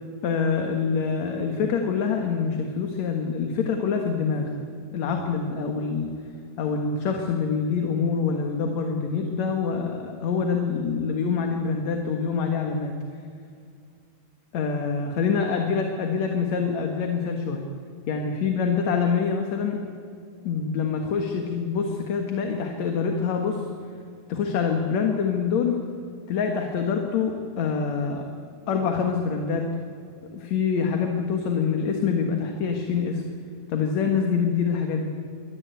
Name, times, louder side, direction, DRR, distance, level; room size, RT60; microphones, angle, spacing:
voice 1, 0.2-4.6 4.9-6.1 6.6-12.9 14.5-17.6 18.1-19.8 20.4-23.6 24.3-25.8 26.3-28.3 28.7-29.7 30.3-33.2 33.7-35.1, left 5 dB, 60° left, 3 dB, 2.6 m, -25 dB
24.0 x 18.5 x 9.2 m, 2.4 s
omnidirectional pair, 3.9 m